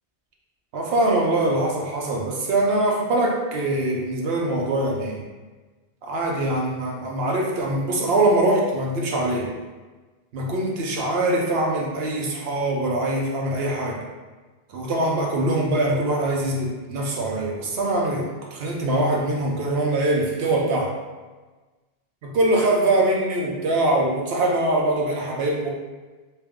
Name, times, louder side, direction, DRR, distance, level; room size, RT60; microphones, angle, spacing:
voice 1, 0.7-5.2 6.0-9.5 10.3-14.0 14.7-20.9 22.2-25.7, right 1 dB, 75° right, -2 dB, 0.9 m, -23 dB
3.3 x 2.2 x 3.5 m, 1.3 s
omnidirectional pair, 1.0 m